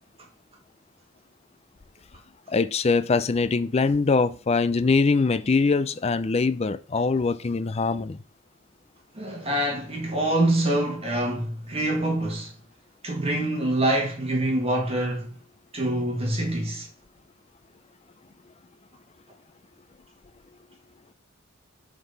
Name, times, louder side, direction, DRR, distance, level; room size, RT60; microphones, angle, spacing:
voice 1, 2.5-8.2, left 4 dB, 30° left, 0.4 m, -23 dB
voice 2, 9.2-12.5 13.0-15.3 15.7-16.9, right 1 dB, 30° right, 1.8 m, -25 dB
7.9 x 4.0 x 5.3 m
head